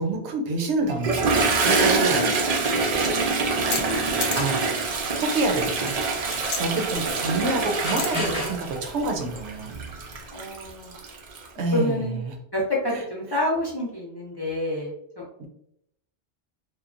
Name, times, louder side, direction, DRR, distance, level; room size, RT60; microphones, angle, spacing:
voice 1, 0.0-2.3 3.9-4.6 5.1-6.0 6.6-9.7 11.6-12.3 12.9-13.0 15.4-15.5, right 3 dB, 85° right, 3 dB, 0.9 m, -27 dB
Toilet flush, 0.9-11.5, right 3 dB, 55° right, 0.4 m, -25 dB
sound 1, 3.7-3.8 4.2-4.6 5.1-5.5 5.9-6.6 8.0-8.1, left 4 dB, 85° left, 0.9 m, -29 dB
voice 2, 3.9-4.3 10.3-10.9 11.7-12.2 12.5-15.2, left 1 dB, 35° left, -4 dB, 0.4 m, -28 dB
sound 2, 4.8-10.2, left 1 dB, 5° right, 0.8 m, -38 dB
2.9 x 2.2 x 2.4 m, 0.75 s
omnidirectional pair, 1.1 m